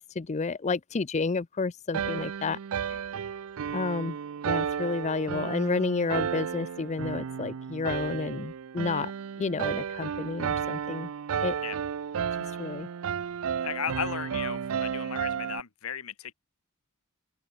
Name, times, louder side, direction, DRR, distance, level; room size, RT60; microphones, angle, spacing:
voice 1, 0.0-2.6 3.7-4.2 4.5-9.1 9.4-11.1 11.4-11.6 12.6-12.9, left 4 dB, 30° left, 0.5 m, -30 dB
sound 1, 1.9-15.6, right 7 dB, 75° right, 0.4 m, -33 dB
voice 2, 13.6-16.3, left 7 dB, 80° left, 1.4 m, -35 dB
open air
head